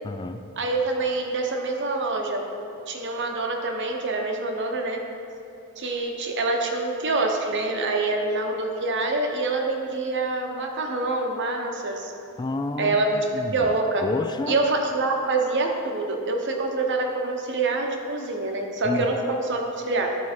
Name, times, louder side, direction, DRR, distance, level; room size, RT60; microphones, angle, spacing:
voice 1, 0.0-0.4 12.4-13.0 13.3-13.7 14.0-14.6 18.8-19.1, left 2 dB, 20° left, 8 dB, 0.3 m, -29 dB
voice 2, 0.6-2.5 2.9-5.0 5.8-12.1 12.8-14.0 14.5-20.2, right 2 dB, 55° right, 2 dB, 1.0 m, -26 dB
12.5 x 4.7 x 4.4 m, 2.6 s
head